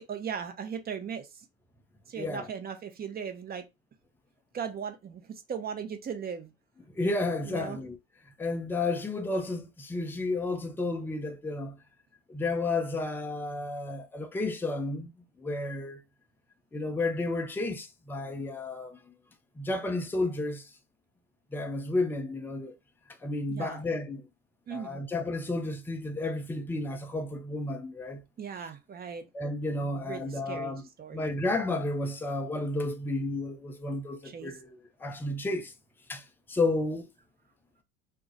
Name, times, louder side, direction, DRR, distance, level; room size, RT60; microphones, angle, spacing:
voice 1, 0.0-1.5 2.1-3.6 4.5-6.5 7.5-7.8 23.5-23.8 24.7-25.0 28.4-29.2 29.8-31.3 34.2-34.5, right 7 dB, 25° right, 0.8 m, -38 dB
voice 2, 2.2-2.5 6.9-8.0 8.4-11.8 12.3-15.1 15.4-16.0 16.7-19.0 19.6-20.7 21.5-22.7 23.2-24.2 24.7-28.2 29.3-35.7 36.1-37.1, left 2 dB, 5° left, 0.4 m, -32 dB
2.3 x 2.0 x 3.9 m
hypercardioid pair, 80°, 36 cm